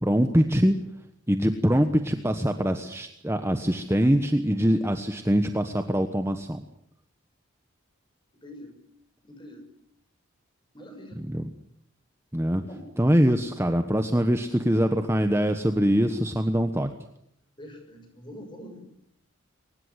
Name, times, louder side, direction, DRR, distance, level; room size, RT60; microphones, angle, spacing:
voice 1, 0.0-0.7 1.3-6.6 11.3-11.5 12.3-12.6 13.0-16.9, equal, 10° right, 7 dB, 1.1 m, -23 dB
voice 2, 8.3-8.7 9.2-9.7 10.7-11.2 12.6-12.9 17.6-18.8, equal, 20° left, 4 dB, 6.6 m, -44 dB
23.0 x 19.5 x 9.6 m, 0.74 s
head